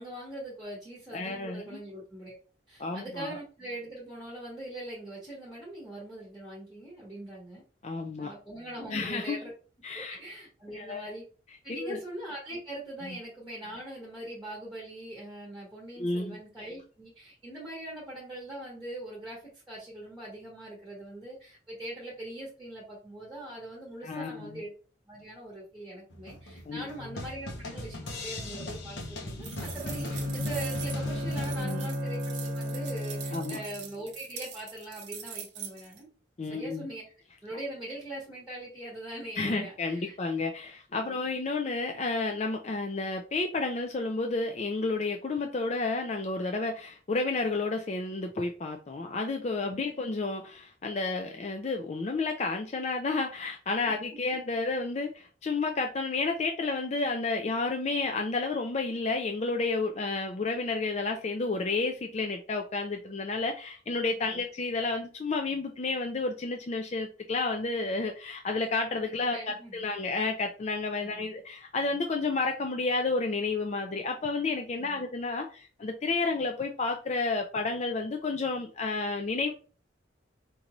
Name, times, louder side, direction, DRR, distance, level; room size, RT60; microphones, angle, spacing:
voice 1, 0.0-2.3 2.7-7.6 8.2-9.5 9.9-11.2 11.6-24.7 25.1-36.1 36.4-37.0 37.4-40.2 41.0-41.1 53.9-54.0 64.2-64.4 69.3-69.9 71.0-71.3 74.8-75.1, right 1 dB, 5° right, -5 dB, 1.2 m, -42 dB
voice 2, 1.1-1.8 2.8-3.3 7.8-8.3 8.9-9.4 9.8-10.2 10.7-11.1 11.8-12.0 13.1-13.2 16.0-16.4 24.0-24.6 26.7-26.9 31.6-31.9 33.3-33.6 36.4-36.9 39.4-69.4 69.7-79.5, left 3 dB, 35° left, 3 dB, 0.4 m, -31 dB
sound 1, 26.1-31.6, left 1 dB, 65° left, 1.0 m, -39 dB
sound 2, 29.4-36.0, right 8 dB, 60° right, 0.8 m, -43 dB
Bowed string instrument, 29.7-33.8, left 1 dB, 30° right, 0.9 m, -33 dB
5.1 x 2.6 x 3.0 m, 0.38 s
head